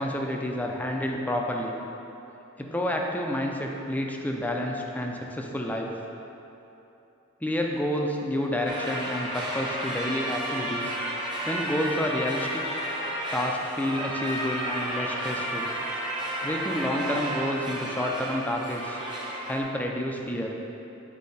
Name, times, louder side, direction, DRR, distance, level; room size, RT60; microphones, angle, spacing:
voice 1, 0.0-1.7 2.6-5.9 7.4-10.9 11.5-12.8 13.3-15.7 16.4-19.0 19.5-20.5, left 1 dB, 10° left, 1 dB, 0.5 m, -29 dB
sound 1, 8.7-19.6, right 1 dB, 25° right, 0.9 m, -32 dB
8.3 x 4.4 x 4.1 m, 2.9 s
head